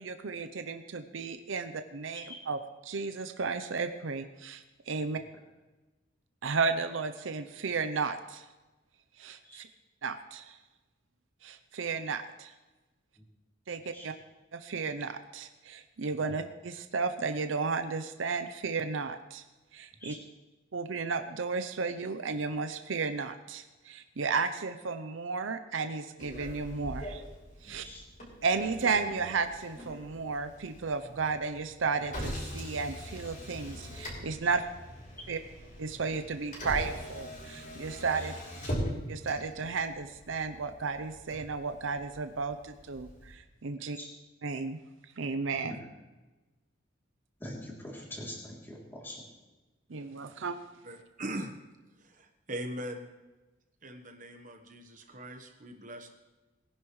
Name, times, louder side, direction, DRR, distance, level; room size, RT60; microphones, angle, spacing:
voice 1, 0.0-2.6 2.8-5.2 6.4-8.5 9.2-9.7 10.0-10.6 11.4-12.5 13.7-14.1 14.5-19.4 19.7-20.1 20.7-27.2 27.6-27.8 28.4-34.6 35.3-35.4 35.8-38.3 39.1-44.0 44.4-44.8 45.2-45.7 49.9-50.6, right 4 dB, 80° right, 8 dB, 0.7 m, -33 dB
voice 2, 13.7-14.1 16.3-16.4 20.0-20.1 27.6-28.0 34.4-34.5 38.1-38.3 43.8-44.1 45.5-45.8 47.4-49.2, left 1 dB, 10° left, -4 dB, 3.1 m, -45 dB
Motor vehicle (road), 26.2-43.3, equal, 45° left, 5.2 m, -42 dB
voice 3, 50.8-51.5 52.0-53.1 53.8-56.1, right 1 dB, 40° right, 4 dB, 1.2 m, -41 dB
21.0 x 11.0 x 3.2 m, 1.1 s
head